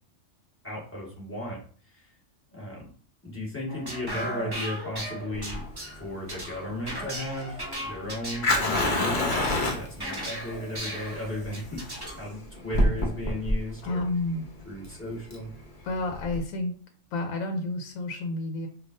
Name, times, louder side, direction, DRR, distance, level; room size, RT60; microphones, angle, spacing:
voice 1, 0.6-1.6 1.9-2.1 2.5-2.9 3.2-5.7 5.9-11.8 12.1-14.0 14.7-15.5, left 1 dB, 10° left, -5 dB, 1.4 m, -35 dB
sound 1, 3.7-12.2, right 1 dB, 20° right, 1.0 m, -36 dB
Fire, 5.3-16.4, left 1 dB, 45° left, 0.9 m, -29 dB
voice 2, 13.8-14.4 14.9-15.0 15.8-16.7 17.1-18.7, left 2 dB, 90° left, 4 dB, 1.0 m, -30 dB
5.1 x 2.6 x 2.6 m, 0.43 s
omnidirectional pair, 1.3 m